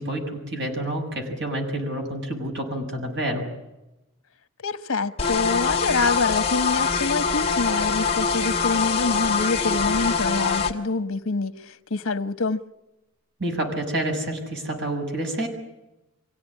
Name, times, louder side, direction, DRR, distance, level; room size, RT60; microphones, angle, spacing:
voice 1, 0.0-3.5 13.4-15.5, right 1 dB, 55° right, 6.9 m, -28 dB
voice 2, 4.6-12.6, left 3 dB, 85° left, 1.2 m, -26 dB
sound 1, 5.2-10.7, left 5 dB, 25° left, 2.0 m, -24 dB
25.5 x 16.5 x 9.9 m
head